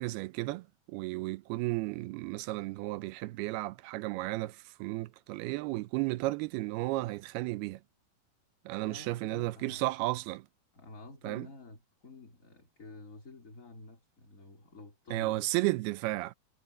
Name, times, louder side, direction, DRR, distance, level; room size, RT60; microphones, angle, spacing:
voice 1, 0.0-7.8 8.7-10.5 11.2-11.5 15.1-16.3, right 19 dB, 90° right, 2.7 m, -33 dB
voice 2, 8.8-9.9 10.7-15.5, left 3 dB, 20° left, 3.7 m, -50 dB
omnidirectional pair, 4.4 m